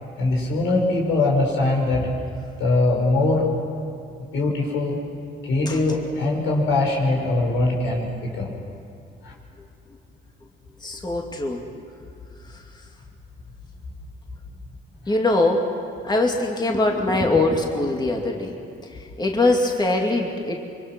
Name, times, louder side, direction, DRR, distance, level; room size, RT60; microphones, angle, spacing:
voice 1, 0.2-2.1 2.6-3.5 4.3-5.0 5.4-8.5 9.2-9.3 15.1-15.2, left 2 dB, 85° left, -1 dB, 5.5 m, -22 dB
voice 2, 10.8-11.7 15.1-15.7 16.0-18.6 19.2-20.6, left 2 dB, 20° left, 1 dB, 2.5 m, -22 dB
26.0 x 23.5 x 6.2 m, 2.4 s
cardioid pair, 90°, 20 cm